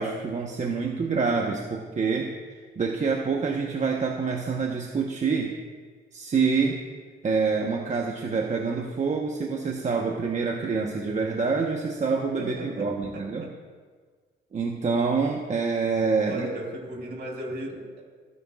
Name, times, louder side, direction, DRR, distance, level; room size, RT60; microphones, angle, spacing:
voice 1, 0.0-2.3 2.8-5.5 6.1-6.8 7.2-13.4 14.5-16.5, right 5 dB, 35° right, 1 dB, 1.1 m, -26 dB
voice 2, 12.4-13.6 16.2-18.0, right 1 dB, 60° right, -2 dB, 4.1 m, -36 dB
29.0 x 9.7 x 2.4 m, 1.5 s
cardioid pair, 90°, 20 cm